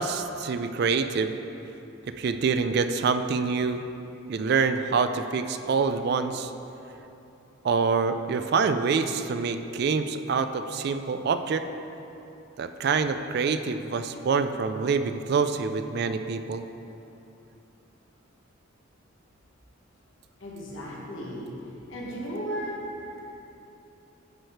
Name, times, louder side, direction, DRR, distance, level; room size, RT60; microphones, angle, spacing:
voice 1, 0.0-1.3 2.2-3.8 4.3-6.5 7.6-11.7 12.6-16.6, right 5 dB, 50° right, 9 dB, 0.3 m, -26 dB
voice 2, 20.4-21.5 21.9-22.9, equal, 65° left, -4 dB, 1.5 m, -35 dB
11.0 x 4.7 x 4.5 m, 2.9 s
head